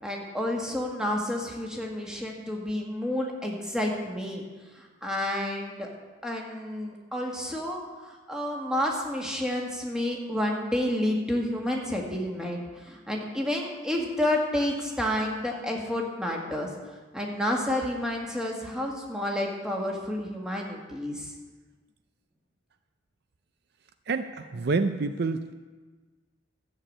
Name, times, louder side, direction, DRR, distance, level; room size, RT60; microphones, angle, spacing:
voice 1, 0.0-4.4 4.8-5.9 6.2-16.7 17.1-21.3, left 1 dB, 5° right, -1 dB, 1.7 m, -30 dB
voice 2, 24.1-25.5, right 3 dB, 55° right, 9 dB, 0.5 m, -28 dB
13.0 x 6.9 x 8.6 m, 1.3 s
head